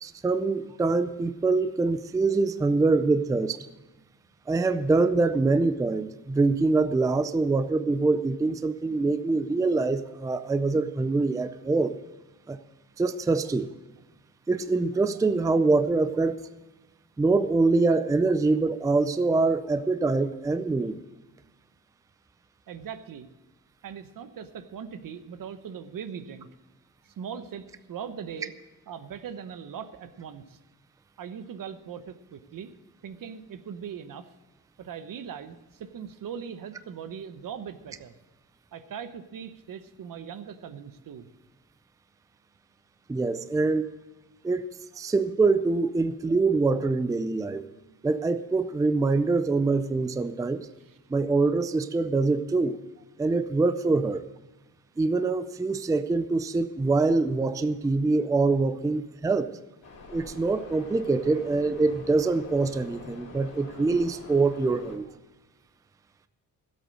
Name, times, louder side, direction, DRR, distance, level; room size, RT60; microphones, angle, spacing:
voice 1, 0.0-3.6 4.5-12.0 12.5-12.6 13.0-13.7 14.5-16.4 17.2-21.0 43.1-43.9 44.4-44.7 45.0-47.6 48.0-50.7 51.1-52.8 53.2-54.3 55.0-59.5 60.1-65.1, right 3 dB, 10° right, 11 dB, 0.4 m, -24 dB
voice 2, 22.7-23.3 23.8-26.5 27.0-28.5 28.9-30.6 31.2-32.7 33.0-34.3 34.8-38.2 38.7-41.3 50.9-51.0, right 7 dB, 70° right, 11 dB, 1.0 m, -40 dB
sound 1, 59.8-65.0, left 3 dB, 45° left, 2.9 m, -46 dB
16.5 x 8.1 x 6.3 m, 1.1 s
wide cardioid pair, 165°, 34 cm